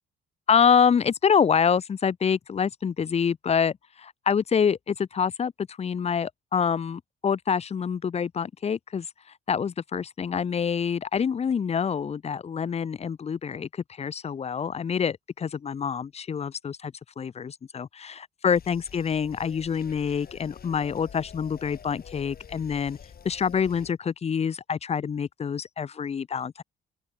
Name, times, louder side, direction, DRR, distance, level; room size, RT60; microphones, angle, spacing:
voice 1, 0.5-9.1 9.5-23.0 23.2-26.6, left 7 dB, 30° left, 0.6 m, -26 dB
sound 1, 18.5-23.9, left 7 dB, 50° left, 2.9 m, -47 dB
open air
cardioid pair, 90°, 20 cm